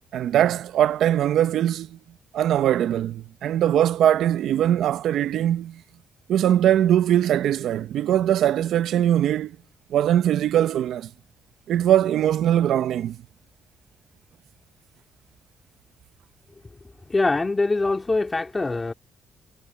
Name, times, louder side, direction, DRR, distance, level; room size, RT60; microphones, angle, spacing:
voice 1, 0.1-2.0 2.3-5.8 6.3-9.6 9.9-11.1 11.7-13.2, right 11 dB, 80° right, 0.7 m, -21 dB
voice 2, 17.1-18.9, left 3 dB, 25° left, 2.3 m, -23 dB
cardioid pair, 80°, 0 cm